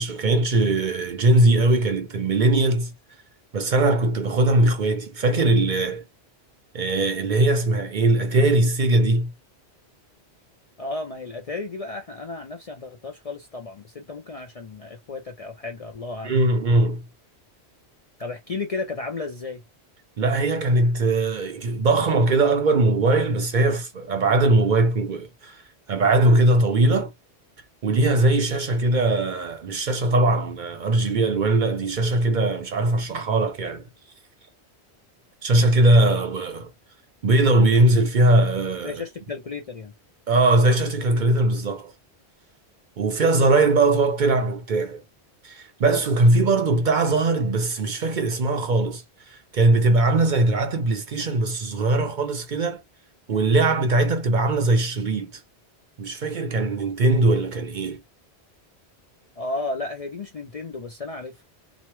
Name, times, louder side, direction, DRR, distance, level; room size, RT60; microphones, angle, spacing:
voice 1, 0.0-2.9 3.5-6.0 6.7-9.3 16.2-17.0 20.2-25.6 25.9-27.1 27.8-33.8 35.4-36.7 37.2-38.9 40.3-41.9 43.0-45.0 45.4-52.8 53.3-55.4 56.0-58.0, right 2 dB, 55° right, 0.7 m, -20 dB
voice 2, 10.8-16.4 18.2-19.6 38.8-39.9 59.4-61.4, left 3 dB, 50° left, 0.5 m, -33 dB
3.0 x 2.1 x 3.0 m
omnidirectional pair, 1.1 m